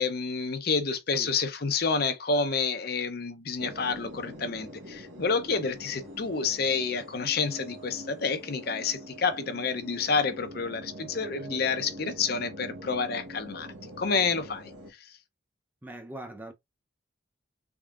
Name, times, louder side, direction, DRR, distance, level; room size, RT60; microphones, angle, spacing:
voice 1, 0.0-13.7 14.0-14.7, left 4 dB, 50° left, 0.6 m, -29 dB
sound 1, 3.6-14.9, equal, 80° right, 1.3 m, -44 dB
voice 2, 15.8-16.5, right 1 dB, 10° right, 0.6 m, -41 dB
3.6 x 3.6 x 2.4 m
head